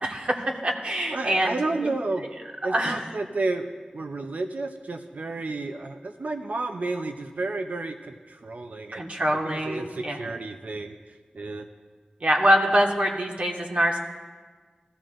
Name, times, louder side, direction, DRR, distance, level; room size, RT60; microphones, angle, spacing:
voice 1, 0.0-1.9 2.6-3.0 8.9-10.2 12.2-14.0, equal, 50° right, 0 dB, 1.5 m, -24 dB
voice 2, 1.1-2.2 2.6-3.7 3.9-9.0 9.4-11.0 11.3-11.7, right 3 dB, 65° right, 6 dB, 0.5 m, -31 dB
15.0 x 14.0 x 2.5 m, 1.5 s
cardioid pair, 45°, 3 cm